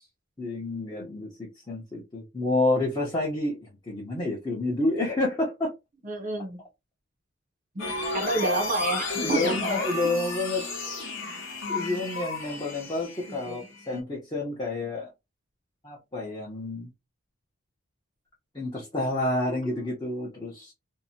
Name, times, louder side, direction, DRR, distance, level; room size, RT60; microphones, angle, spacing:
voice 1, 0.4-5.7 9.2-10.6 11.7-15.1 15.8-16.9 18.5-20.7, left 2 dB, 20° left, 0.7 m, -29 dB
voice 2, 6.0-6.6 7.8-9.8 13.3-13.6, right 2 dB, 35° right, 0.6 m, -29 dB
sound 1, 7.8-14.0, left 3 dB, 60° left, 0.9 m, -33 dB
2.6 x 2.1 x 2.7 m
head